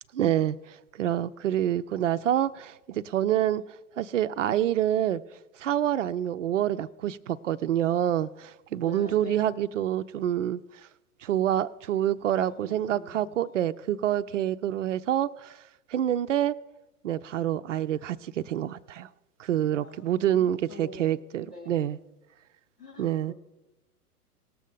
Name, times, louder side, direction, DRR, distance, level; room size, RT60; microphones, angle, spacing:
voice 1, 0.1-0.6 1.0-3.6 4.0-5.2 5.6-10.6 11.2-15.6 15.9-16.5 17.0-19.1 19.4-22.0 23.0-23.3, right 11 dB, 55° right, 0.5 m, -27 dB
voice 2, 8.8-9.5 12.2-13.3 19.8-21.2 21.5-22.0 22.8-23.3, left 2 dB, 85° left, 2.2 m, -46 dB
19.0 x 7.2 x 3.7 m
figure-of-eight pair, 105°, 46 cm